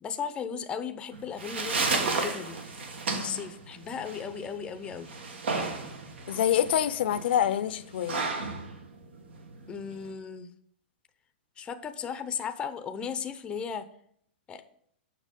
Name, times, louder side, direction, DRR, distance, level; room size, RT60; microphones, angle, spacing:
voice 1, 0.0-2.6 3.1-5.1 9.7-10.5 11.6-13.8 14.5-14.6, left 7 dB, 15° left, 0.5 m, -36 dB
sound 1, 1.1-10.1, right 3 dB, 85° right, 1.5 m, -33 dB
voice 2, 6.3-8.3, left 10 dB, 65° left, 0.5 m, -26 dB
7.5 x 5.9 x 5.2 m
hypercardioid pair, 145°, 6 cm